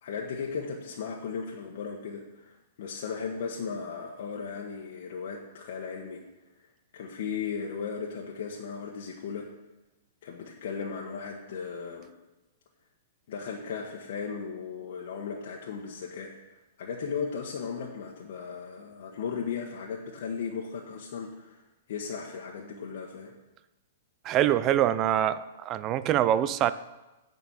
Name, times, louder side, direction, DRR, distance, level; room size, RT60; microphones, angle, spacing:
voice 1, 0.0-6.2 6.5-6.7 6.9-9.5 10.2-12.1 13.3-21.6 21.9-23.3, left 6 dB, 65° left, -1 dB, 1.3 m, -36 dB
voice 2, 24.2-26.7, right 11 dB, 30° right, 14 dB, 0.5 m, -24 dB
8.8 x 5.4 x 7.1 m, 1.0 s
hypercardioid pair, 145°, 0 cm